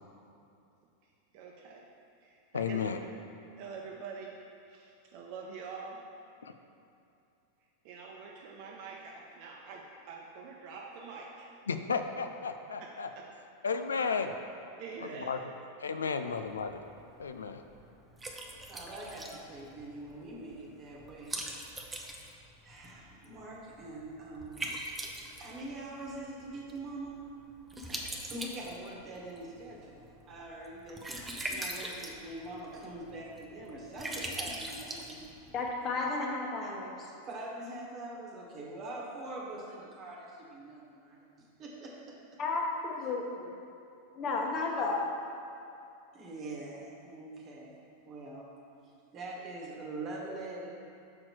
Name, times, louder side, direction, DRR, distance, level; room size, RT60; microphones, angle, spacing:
voice 1, 1.3-1.9 2.2-2.8 3.6-4.3 4.7-6.0 7.8-11.4 12.8-12.9 14.8-15.3, right 5 dB, 55° right, -2 dB, 0.7 m, -45 dB
voice 2, 2.5-3.0 6.4-6.5 11.7-13.1 13.6-14.4 15.0-15.4 15.8-16.8 17.2-17.6, left 5 dB, 85° left, 8 dB, 0.4 m, -33 dB
Liquid, 16.3-35.7, right 1 dB, 15° right, 0.7 m, -43 dB
voice 3, 18.7-21.4 22.6-24.7 25.4-27.1 27.9-31.0 31.5-35.2 35.9-36.0 37.2-42.2 46.1-47.7 48.1-48.5 49.1-50.7, right 2 dB, 40° right, -2 dB, 1.2 m, -43 dB
voice 4, 35.5-37.1 42.4-43.2 44.2-45.1, left 3 dB, 40° left, 0 dB, 1.1 m, -32 dB
6.3 x 4.4 x 4.4 m, 2.6 s
hypercardioid pair, 100°, 0 cm